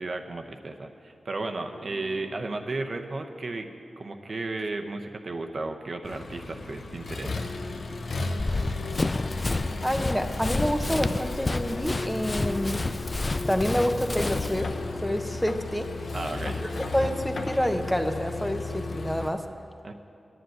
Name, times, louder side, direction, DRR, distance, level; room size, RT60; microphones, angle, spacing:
voice 1, 0.0-3.7 4.0-7.5 16.1-16.6 19.8-19.9, right 2 dB, 55° right, 5 dB, 0.8 m, -34 dB
sound 1, 1.7-6.0, right 3 dB, 80° right, 1.5 m, -52 dB
Accelerating revving vroom, 6.0-19.3, left 3 dB, 70° left, 0.9 m, -34 dB
Run, 8.4-14.6, left 2 dB, 35° left, 0.4 m, -30 dB
voice 2, 9.8-12.8 13.5-14.7 15.0-16.1 16.6-19.5, equal, 5° left, 6 dB, 0.8 m, -28 dB
9.8 x 7.8 x 9.3 m, 2.5 s
cardioid pair, 60°, 0 cm